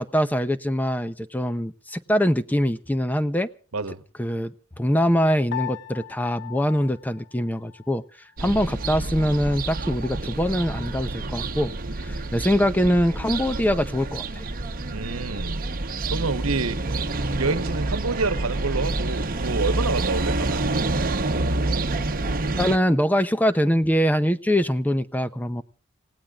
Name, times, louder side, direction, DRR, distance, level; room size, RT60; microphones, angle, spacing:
voice 1, 0.0-3.5 4.2-8.0 8.4-11.7 12.0-14.5 22.6-25.6, equal, 10° left, 12 dB, 0.7 m, -23 dB
Piano, 5.5-8.0, left 12 dB, 55° left, 0.6 m, -37 dB
sound 1, 8.4-22.8, right 2 dB, 45° right, 1.0 m, -28 dB
voice 2, 14.9-15.6 16.1-17.0 17.4-20.6, right 3 dB, 85° right, 12 dB, 1.2 m, -28 dB
28.0 x 17.5 x 2.5 m, 0.39 s
head